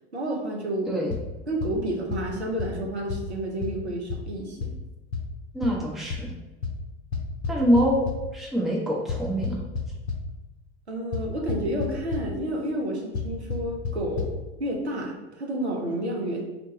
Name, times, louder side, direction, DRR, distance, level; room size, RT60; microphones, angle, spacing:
voice 1, 0.1-1.0 1.5-4.8 10.9-16.4, right 1 dB, 85° right, 0 dB, 0.6 m, -30 dB
sound 1, 1.1-1.2 1.6-1.7 2.1-2.2 2.6-2.7 3.1-3.2 3.6-3.7 4.1-4.2 4.6-4.7 5.1-5.2 5.6-5.7 6.1-6.2 6.6-6.7 7.1-8.1 9.1-10.2 11.1-11.2 11.5-11.9 12.1-12.2 13.1-13.2 13.5-13.6 13.8-13.9 14.2-14.3, left 5 dB, 70° left, 0.6 m, -28 dB
voice 2, 5.5-6.3 7.5-9.6, equal, ahead, -4 dB, 0.6 m, -25 dB
2.8 x 2.2 x 3.9 m, 1.1 s
figure-of-eight pair, 80°, 32 cm